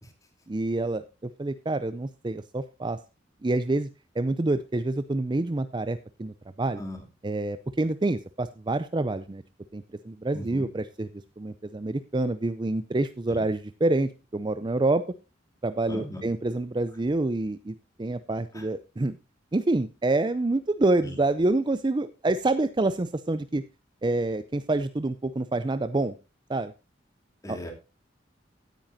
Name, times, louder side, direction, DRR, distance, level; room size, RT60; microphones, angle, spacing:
voice 1, 0.5-3.0 3.4-3.9 4.2-6.8 7.2-9.4 9.7-11.1 11.4-15.0 15.6-19.2 19.5-23.6 24.0-26.1 26.5-26.7 27.5-27.6, right 2 dB, 25° right, 13 dB, 0.5 m, -27 dB
voice 2, 10.3-10.7 13.3-13.4 15.9-16.3 18.5-18.6 21.0-21.2 27.4-27.7, left 1 dB, 20° left, 3 dB, 2.8 m, -38 dB
16.5 x 9.2 x 2.7 m, 0.28 s
head